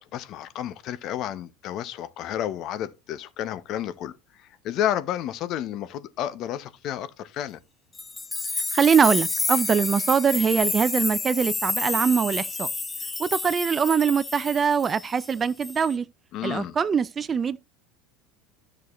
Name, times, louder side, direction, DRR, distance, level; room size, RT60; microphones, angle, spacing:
voice 1, 0.0-7.6 16.3-16.8, left 11 dB, 50° left, 0.9 m, -31 dB
sound 1, 8.0-15.3 15.6-16.0, left 3 dB, 20° left, 0.7 m, -29 dB
voice 2, 8.7-12.7 13.2-16.1 16.4-17.6, right 6 dB, 30° right, 0.5 m, -23 dB
13.0 x 6.5 x 3.1 m
hypercardioid pair, 75°, 0 cm